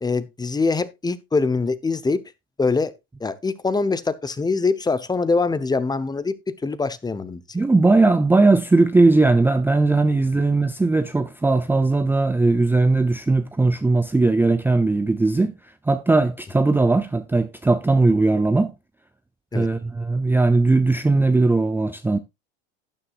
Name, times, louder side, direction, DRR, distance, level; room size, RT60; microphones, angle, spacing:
voice 1, 0.0-2.2 2.6-2.9 3.2-7.4 19.5-19.7, left 4 dB, 15° left, 0.9 m, -23 dB
voice 2, 7.5-15.5 15.9-18.7 19.5-22.2, right 3 dB, 5° right, 0.6 m, -19 dB
12.5 x 9.8 x 2.5 m
supercardioid pair, 100°, 30 cm